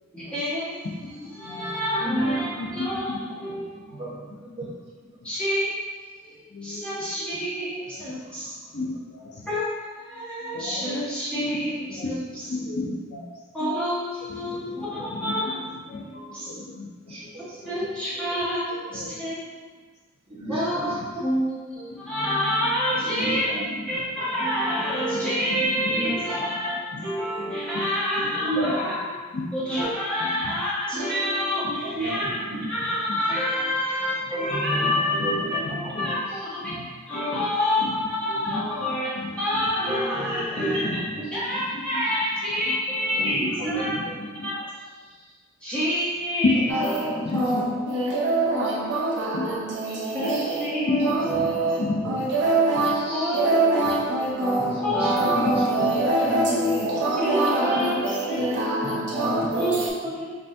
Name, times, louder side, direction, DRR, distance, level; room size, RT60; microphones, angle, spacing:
voice 1, 0.1-0.9 1.4-4.3 5.2-5.7 6.1-8.5 9.4-9.7 9.9-12.4 13.5-14.7 15.2-15.5 15.9-16.5 17.4-19.6 20.5-23.5 23.9-29.0 29.5-32.3 32.7-39.1 39.4-41.0 41.3-44.0 44.3-44.7 45.6-46.6 46.8-47.3 49.1-49.6 50.0-51.2 53.1-53.8 54.8-55.6 57.0-58.7 59.5-60.4, equal, 5° left, -11 dB, 1.3 m, -28 dB
voice 2, 0.8-1.8 2.6-3.6 4.2-4.7 6.5-7.3 7.9-8.1 8.7-9.5 10.5-11.0 11.5-11.6 11.9-13.3 14.3-14.6 15.1-15.6 15.9-17.5 18.7-19.4 21.0-21.1 21.9-22.1 23.7-23.9 25.1-26.0 26.9-27.1 27.4-27.9 28.2-28.3 29.3-29.6 30.2-30.6 31.6-31.8 32.5-32.6 33.1-33.2 35.1-36.2 36.6-36.9 37.3-37.4 37.8-38.1 38.5-38.9 39.1-39.4 40.6-41.2 41.5-42.0 43.2-44.5 46.4-46.5 47.1-48.1 49.3-49.5 50.9-52.2 52.8-52.9 54.2-54.4 55.0-55.1 55.4-56.4 56.8-56.9 58.4-58.9, left 3 dB, 50° left, -3 dB, 0.5 m, -33 dB
voice 3, 3.7-4.7 14.4-14.6 17.1-17.6 20.3-20.9 23.0-23.6 25.9-26.1 28.4-28.8 31.9-32.6 34.7-35.5 35.8-35.9 38.2-38.3 40.5-40.8 41.1-41.2 43.2-44.2 47.0-47.2 48.6-48.8 51.0-51.5 52.8-53.4 54.4-55.6 56.2-56.7 58.7-59.7, right 1 dB, 25° right, -9 dB, 1.1 m, -32 dB
sound 1, 46.7-59.9, right 2 dB, 55° right, 0.7 m, -24 dB
5.4 x 2.6 x 2.6 m, 1.4 s
head